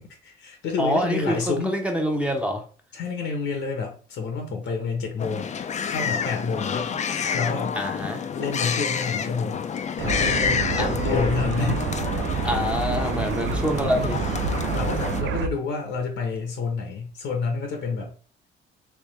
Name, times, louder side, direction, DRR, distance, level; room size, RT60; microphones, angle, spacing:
voice 1, 0.2-1.7 2.9-5.5 5.9-6.9 7.3-7.8 8.3-9.7 10.0-11.9 12.3-12.5 14.7-18.1, left 4 dB, 75° left, 0.9 m, -29 dB
voice 2, 0.8-2.6 7.8-8.3 10.7-10.9 12.4-14.2, equal, 5° right, 0.8 m, -26 dB
sound 1, 5.2-15.2, left 7 dB, 35° left, 0.4 m, -29 dB
sound 2, 10.0-15.5, right 6 dB, 70° right, 0.4 m, -28 dB
3.4 x 3.2 x 3.1 m
cardioid pair, 90°, 20 cm